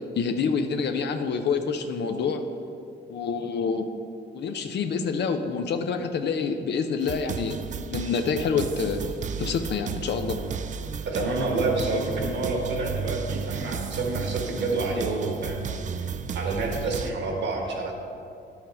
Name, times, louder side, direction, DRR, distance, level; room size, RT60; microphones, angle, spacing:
voice 1, 0.2-2.4 3.1-3.8 4.3-7.6 7.9-9.0 9.4-10.4, left 5 dB, 60° left, 6 dB, 0.6 m, -27 dB
sound 1, 7.0-17.1, right 6 dB, 40° right, 0.4 m, -33 dB
voice 2, 11.0-15.7 16.0-16.1 16.3-17.9, right 2 dB, 65° right, 1 dB, 1.6 m, -28 dB
10.5 x 5.7 x 4.3 m, 2.5 s
cardioid pair, 90°, 20 cm